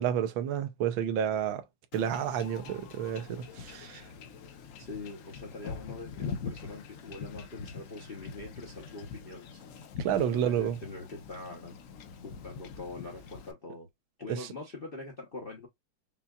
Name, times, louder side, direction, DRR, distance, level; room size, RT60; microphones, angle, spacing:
voice 1, 0.0-1.6 1.9-4.0 10.0-10.8 14.3-14.5, right 9 dB, 80° right, 1.5 m, -30 dB
Wind / Ocean / Boat Water vehicle, 1.9-13.5, left 5 dB, 80° left, 0.7 m, -43 dB
voice 2, 4.8-9.6 10.3-11.8 12.2-13.9 14.2-15.7, left 3 dB, 45° left, 0.7 m, -43 dB
5.5 x 2.3 x 2.3 m
omnidirectional pair, 2.2 m